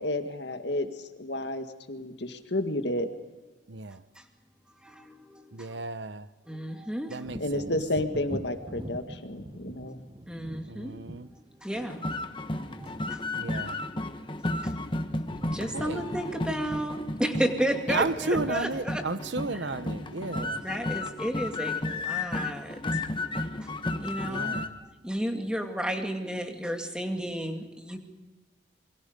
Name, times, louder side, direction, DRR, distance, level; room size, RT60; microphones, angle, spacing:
voice 1, 0.0-3.1 7.4-10.0, left 1 dB, 60° left, 7 dB, 2.0 m, -31 dB
voice 2, 3.7-4.0 5.5-6.3 7.1-7.7 10.7-11.3 13.3-13.8 15.7-16.1 17.9-20.6 24.2-24.7, right 3 dB, 65° right, 14 dB, 0.9 m, -33 dB
voice 3, 4.8-5.8 6.5-7.3 9.8-9.9 10.3-11.0 11.3-12.1 12.7-13.2 14.6-14.7 15.5-19.0 19.5-19.7 20.6-23.0 23.6-24.5 25.0-28.0, equal, 5° right, 4 dB, 2.3 m, -33 dB
Wind / Thunder, 7.2-14.8 15.1-22.3 22.7-22.9, right 1 dB, 25° right, 1.1 m, -46 dB
sound 1, 11.8-24.7, left 2 dB, 25° left, 1.3 m, -33 dB
28.0 x 23.0 x 5.3 m, 1.2 s
head